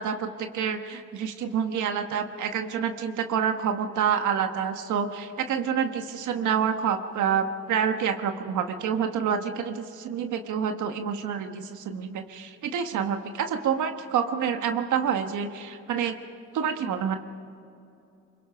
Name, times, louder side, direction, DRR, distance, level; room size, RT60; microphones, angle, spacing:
voice 1, 0.0-16.1 16.5-17.2, right 7 dB, 80° right, 6 dB, 1.3 m, -28 dB
24.5 x 22.0 x 5.7 m, 2.6 s
cardioid pair, 90°, 30 cm